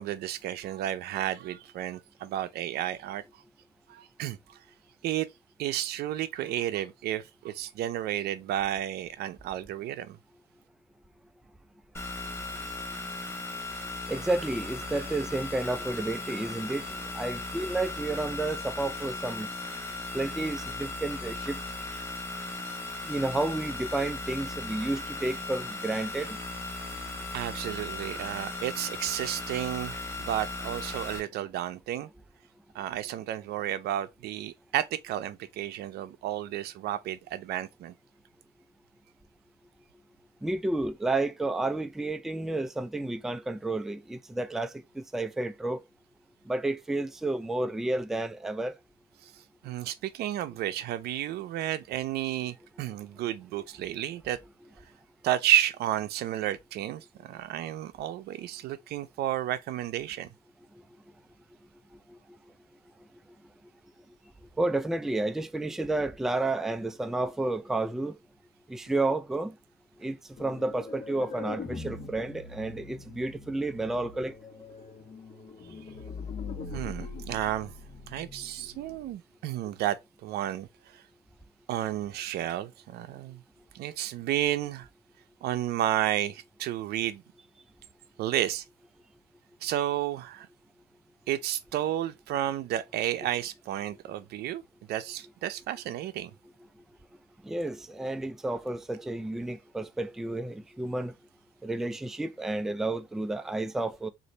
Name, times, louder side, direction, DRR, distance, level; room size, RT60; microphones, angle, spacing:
voice 1, 0.0-3.2 3.9-4.6 5.0-5.3 5.6-10.2 27.3-32.1 32.7-37.9 49.2-54.4 55.2-60.3 76.7-77.7 78.1-81.0 81.7-83.4 83.7-84.9 85.4-87.2 88.2-88.6 89.6-90.5 91.3-94.6 94.9-96.3, right 12 dB, 75° right, 0.5 m, -32 dB
sound 1, 11.9-31.2, left 2 dB, 15° left, 1.1 m, -37 dB
voice 2, 14.1-16.8 17.1-19.5 20.1-21.6 23.1-26.4 40.4-44.7 45.0-45.8 46.5-48.7 64.6-68.2 68.7-69.5 70.0-74.3 97.4-101.1 101.6-104.1, right 2 dB, ahead, 0.3 m, -31 dB
sound 2, 70.4-79.1, left 4 dB, 35° left, 1.2 m, -42 dB
3.9 x 2.6 x 3.2 m
cardioid pair, 110°, 17 cm